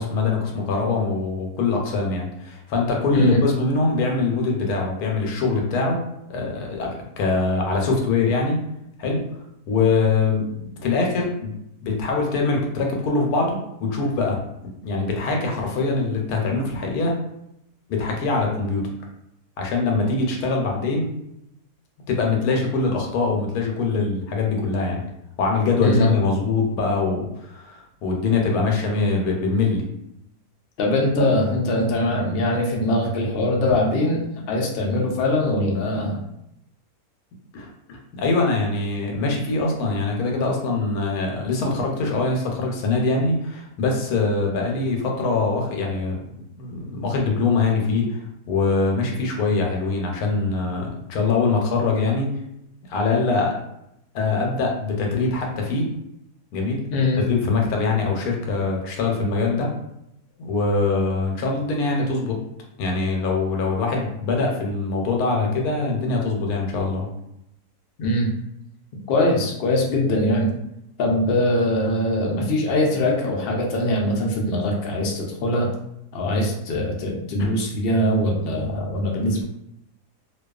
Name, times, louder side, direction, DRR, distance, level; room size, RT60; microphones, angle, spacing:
voice 1, 0.0-6.0 6.3-8.6 9.0-9.2 9.7-11.5 11.8-14.4 14.8-17.1 17.9-18.8 19.6-21.1 22.1-25.0 25.4-29.9 37.5-46.2 46.6-48.2 48.5-52.3 52.9-53.5 54.1-55.8 56.5-56.8 57.2-59.7 60.4-62.4 62.8-67.1, left 3 dB, 75° left, 0 dB, 1.1 m, -23 dB
voice 2, 30.8-34.2 34.5-36.2 56.9-57.2 68.0-68.3 69.1-70.5 71.0-75.7 76.1-79.4, left 1 dB, 90° left, -1 dB, 0.5 m, -22 dB
2.5 x 2.3 x 2.3 m, 0.81 s
omnidirectional pair, 1.7 m